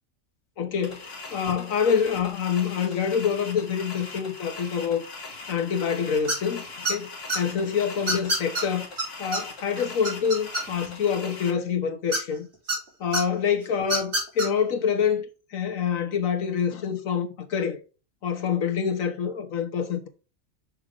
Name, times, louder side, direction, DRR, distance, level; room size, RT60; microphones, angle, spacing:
voice 1, 0.6-7.1 7.3-8.9 9.2-12.5 13.0-17.8 18.2-20.1, left 7 dB, 80° left, 1.5 m, -26 dB
sound 1, 0.8-11.5, left 3 dB, 50° left, 1.9 m, -41 dB
sound 2, 6.3-6.5 6.8-7.4 8.1-8.6 9.0-9.1 9.3-9.4 9.8-10.9 12.1-12.8 13.1-13.2 13.8-14.5, right 1 dB, 55° right, 3.7 m, -26 dB
6.5 x 6.4 x 3.5 m
omnidirectional pair, 1.4 m